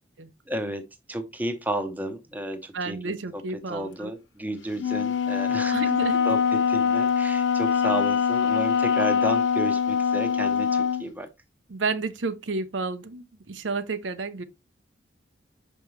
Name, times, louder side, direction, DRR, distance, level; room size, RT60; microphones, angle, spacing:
voice 1, 0.5-0.8 1.1-3.4 3.7-5.7 6.2-11.3, right 1 dB, 10° right, 0.8 m, -32 dB
voice 2, 2.7-4.1 5.7-6.2 11.7-14.4, right 3 dB, 85° right, 0.7 m, -31 dB
Wind instrument woodwind instrument, 4.8-11.1, left 6 dB, 75° left, 0.5 m, -23 dB
5.8 x 5.5 x 3.1 m
head